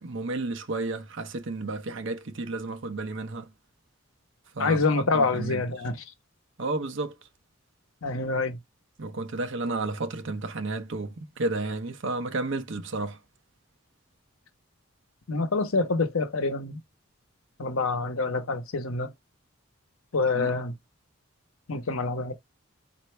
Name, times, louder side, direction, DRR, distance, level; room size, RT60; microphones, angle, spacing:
voice 1, 0.0-3.5 4.5-4.8 5.1-5.6 6.6-7.1 9.0-13.2 20.3-20.5, right 2 dB, 65° right, 0.7 m, -32 dB
voice 2, 4.6-6.0 8.0-8.6 15.3-16.8 17.6-19.1 20.1-20.7 21.7-22.3, left 3 dB, 85° left, 0.8 m, -26 dB
4.3 x 2.6 x 3.2 m
head